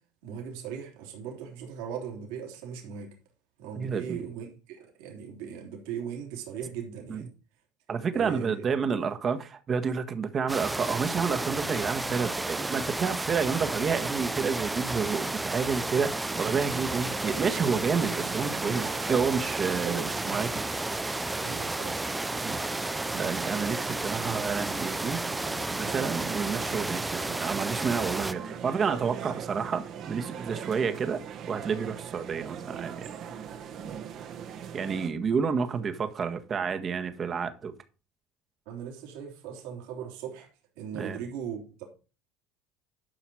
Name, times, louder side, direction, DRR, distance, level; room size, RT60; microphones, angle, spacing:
voice 1, 0.2-3.1 3.6-7.3 8.1-8.6 18.1-18.3 19.8-20.4 21.4-22.0 26.7-26.9 38.7-40.5 40.8-41.8, right 8 dB, 80° right, 3.4 m, -39 dB
voice 2, 3.7-4.3 7.1-7.3 7.9-20.6 22.4-22.6 23.1-25.2 25.5-31.2 31.5-33.2 34.7-37.7 40.9-41.2, right 6 dB, 40° right, 1.5 m, -30 dB
sound 1, 10.5-28.3, right 2 dB, 10° right, 0.5 m, -32 dB
sound 2, 16.2-35.1, right 8 dB, 55° right, 1.5 m, -41 dB
12.0 x 5.7 x 4.8 m
supercardioid pair, 85°, 0 cm